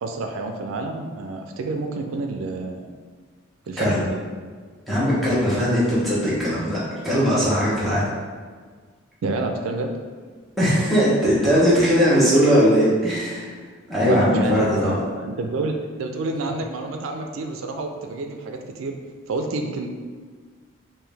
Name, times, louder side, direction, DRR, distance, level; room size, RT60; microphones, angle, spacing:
voice 1, 0.0-2.9 3.7-4.0 9.2-9.9 14.1-18.9 19.3-19.9, right 2 dB, 90° right, 4 dB, 0.4 m, -29 dB
voice 2, 4.9-8.1 10.6-13.5 13.9-14.9, equal, ahead, -10 dB, 0.9 m, -19 dB
3.6 x 2.6 x 3.3 m, 1.5 s
head